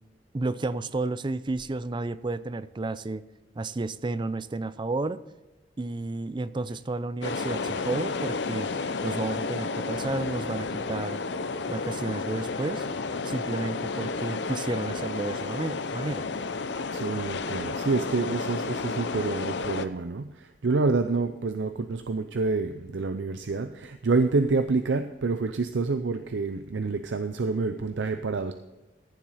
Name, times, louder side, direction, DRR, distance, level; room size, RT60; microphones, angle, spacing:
voice 1, 0.3-3.3 3.6-5.2 5.8-8.7 9.0-11.2 11.7-12.9 13.2-16.3, right 2 dB, 25° right, 15 dB, 0.4 m, -31 dB
sound 1, 7.2-19.9, left 4 dB, 70° left, 0.7 m, -32 dB
voice 2, 16.9-28.5, right 3 dB, 80° right, 9 dB, 0.6 m, -27 dB
14.5 x 7.4 x 4.1 m, 1.1 s
head